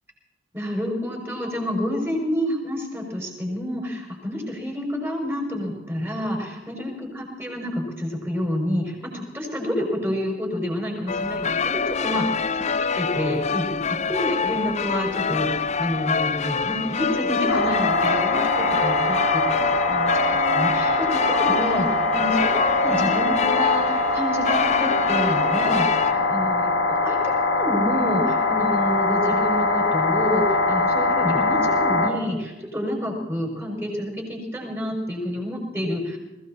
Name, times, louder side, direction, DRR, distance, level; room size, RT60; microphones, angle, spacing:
voice 1, 0.5-13.8 14.1-19.5 19.8-22.5 22.8-36.2, left 1 dB, 15° right, 0 dB, 5.2 m, -28 dB
sound 1, 11.1-26.1, left 5 dB, 35° left, 0.5 m, -25 dB
sound 2, 17.5-32.1, left 2 dB, 70° left, 2.5 m, -22 dB
20.5 x 16.5 x 4.3 m, 1.0 s
head